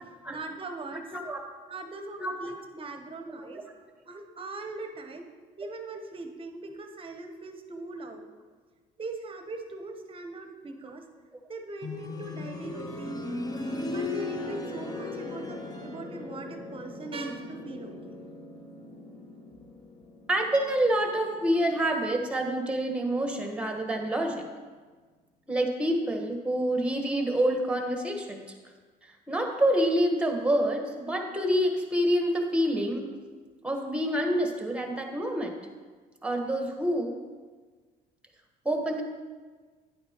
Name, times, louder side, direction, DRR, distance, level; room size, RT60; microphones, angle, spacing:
voice 1, 0.0-1.0 1.7-3.6 4.1-5.2 5.6-8.3 9.0-11.0 11.5-13.3 13.8-18.2, right 2 dB, 30° right, 5 dB, 0.9 m, -40 dB
voice 2, 2.2-2.5 20.3-24.4 25.5-28.5 29.0-33.1 33.6-35.6 36.2-37.2 38.6-39.0, right 1 dB, 5° right, 3 dB, 1.3 m, -27 dB
sound 1, 11.8-22.6 24.0-24.1, left 2 dB, 25° left, 0.9 m, -38 dB
10.0 x 8.8 x 3.0 m, 1.4 s
cardioid pair, 110°, 17 cm